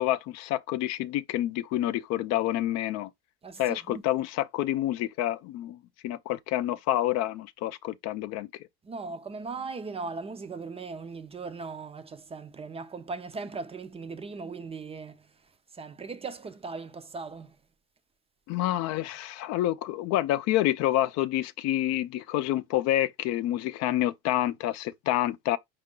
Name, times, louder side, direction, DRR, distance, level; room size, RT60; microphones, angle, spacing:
voice 1, 0.0-3.1 3.6-5.8 6.0-8.5 18.5-25.6, left 14 dB, 60° left, 0.5 m, -28 dB
voice 2, 3.4-4.0 8.8-15.3 15.7-17.6, right 4 dB, 20° right, 0.4 m, -38 dB
4.5 x 2.4 x 3.7 m
supercardioid pair, 110°, 29 cm